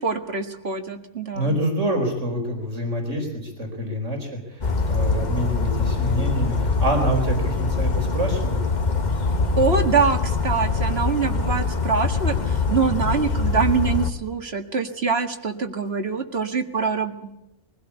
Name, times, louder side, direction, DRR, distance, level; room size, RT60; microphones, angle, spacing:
voice 1, 0.0-1.6 9.6-17.3, right 5 dB, 55° right, 7 dB, 2.2 m, -24 dB
voice 2, 1.3-8.6, right 1 dB, 80° right, 3 dB, 4.8 m, -26 dB
Bird vocalization bird call bird song, 4.6-14.1, left 3 dB, 40° left, 1.4 m, -23 dB
23.0 x 16.5 x 8.3 m, 0.87 s
omnidirectional pair, 1.3 m